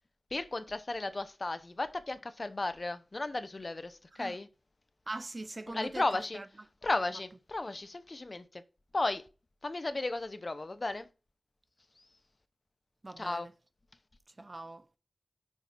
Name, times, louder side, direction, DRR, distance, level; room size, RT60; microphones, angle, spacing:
voice 1, 0.3-4.5 5.7-6.4 6.8-8.6 8.9-9.2 9.6-11.1 13.2-13.5, left 2 dB, 45° left, 0.7 m, -34 dB
voice 2, 5.1-6.1 6.3-6.5 13.0-13.5 14.4-14.9, right 2 dB, 40° right, 0.5 m, -42 dB
6.4 x 4.0 x 5.4 m
wide cardioid pair, 75°, 0 cm